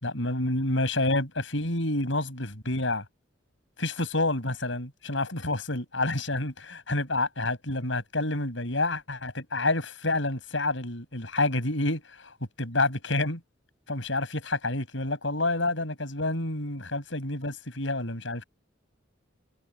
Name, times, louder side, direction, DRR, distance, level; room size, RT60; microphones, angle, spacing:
voice 1, 0.0-3.0 3.8-12.0 12.6-13.4 13.9-18.4, left 2 dB, 65° left, 7.3 m, -28 dB
head